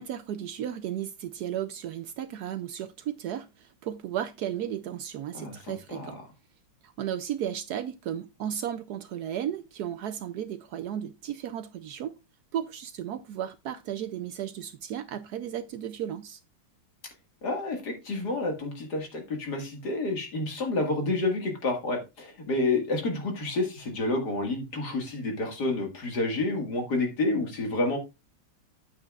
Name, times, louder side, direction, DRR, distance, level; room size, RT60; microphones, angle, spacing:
voice 1, 0.0-6.2 6.8-12.2 12.5-16.4, right 10 dB, 75° right, 0.9 m, -34 dB
voice 2, 5.3-6.2 17.4-28.0, left 2 dB, 55° left, 2.3 m, -29 dB
8.9 x 8.9 x 2.4 m
omnidirectional pair, 2.2 m